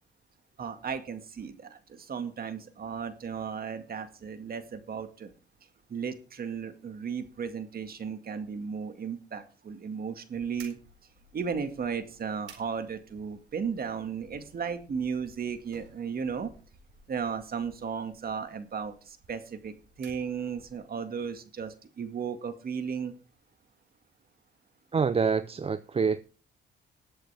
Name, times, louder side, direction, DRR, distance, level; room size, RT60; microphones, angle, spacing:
voice 1, 0.6-5.3 5.9-10.8 11.3-16.5 17.1-19.7 20.0-23.1, right 6 dB, 50° right, 2.1 m, -35 dB
sound 1, 10.5-20.9, right 4 dB, 80° right, 4.4 m, -57 dB
voice 2, 24.9-26.2, right 5 dB, 30° right, 0.6 m, -26 dB
20.5 x 8.0 x 3.5 m
cardioid pair, 90°, 20 cm